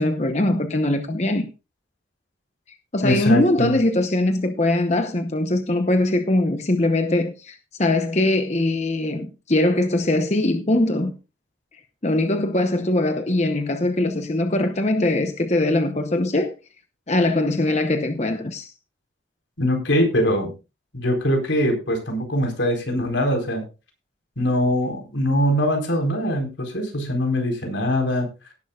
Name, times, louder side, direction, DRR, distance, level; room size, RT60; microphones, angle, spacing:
voice 1, 0.0-1.5 2.9-11.1 12.0-16.5 17.1-18.7, left 1 dB, 35° left, 0.9 m, -21 dB
voice 2, 3.0-3.7 19.6-20.5 20.9-23.6 24.4-28.3, equal, 85° left, 4.4 m, -22 dB
18.0 x 11.0 x 2.4 m
head